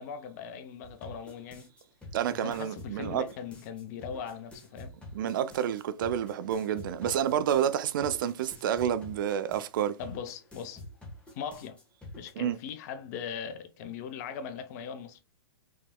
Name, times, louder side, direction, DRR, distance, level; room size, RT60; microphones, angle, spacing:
voice 1, 0.0-1.7 2.3-4.9 10.0-10.8 11.3-11.8 12.1-15.2, left 7 dB, 40° left, 0.6 m, -40 dB
sound 1, 0.8-12.3, left 1 dB, 10° left, 1.5 m, -48 dB
voice 2, 2.1-3.2 5.1-10.0 12.4-12.6, right 9 dB, 50° right, 0.5 m, -29 dB
5.3 x 3.3 x 2.2 m
figure-of-eight pair, 110°, 14 cm